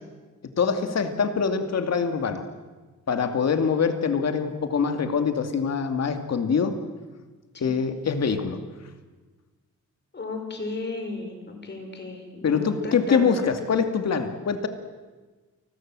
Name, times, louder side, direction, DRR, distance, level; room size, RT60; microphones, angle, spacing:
voice 1, 0.6-2.4 3.1-6.8 7.6-8.6 12.4-14.7, left 6 dB, 55° left, 7 dB, 2.4 m, -24 dB
voice 2, 10.1-13.5, left 3 dB, 35° left, 5 dB, 5.4 m, -35 dB
29.5 x 20.0 x 7.7 m, 1.3 s
wide cardioid pair, 130°, 30 cm